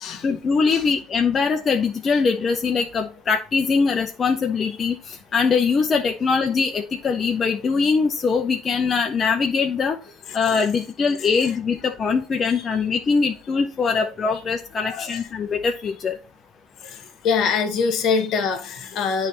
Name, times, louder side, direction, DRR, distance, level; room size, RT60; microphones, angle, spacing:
voice 1, 0.2-10.0 10.3-16.2, left 5 dB, 30° left, 0.5 m, -22 dB
voice 2, 14.8-15.2 17.2-19.3, left 5 dB, 55° left, 1.2 m, -24 dB
9.0 x 3.2 x 4.0 m
cardioid pair, 135°, 0 cm